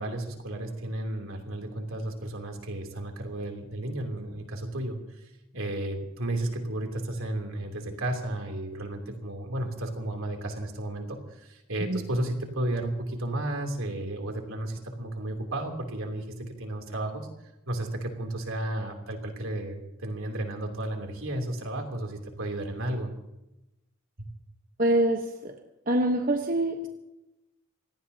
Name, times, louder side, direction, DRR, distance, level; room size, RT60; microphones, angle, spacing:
voice 1, 0.0-17.3 17.7-23.1, right 1 dB, 80° right, 3 dB, 3.2 m, -33 dB
voice 2, 24.8-25.5 25.9-26.9, right 1 dB, 40° right, 3 dB, 1.1 m, -25 dB
27.0 x 18.0 x 2.9 m, 0.94 s
head